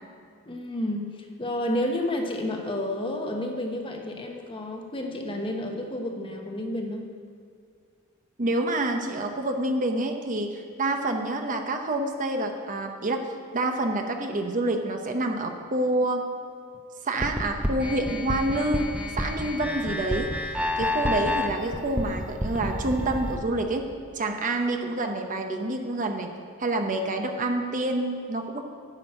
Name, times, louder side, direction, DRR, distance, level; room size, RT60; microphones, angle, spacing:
voice 1, 0.5-7.1, left 1 dB, 25° left, 2 dB, 1.1 m, -30 dB
voice 2, 8.4-16.3 17.0-23.9 24.1-26.3 26.6-28.6, right 2 dB, 40° right, 4 dB, 0.8 m, -27 dB
sound 1, 17.2-23.4, left 1 dB, 5° right, 0.7 m, -29 dB
9.9 x 6.2 x 8.8 m, 2.1 s
head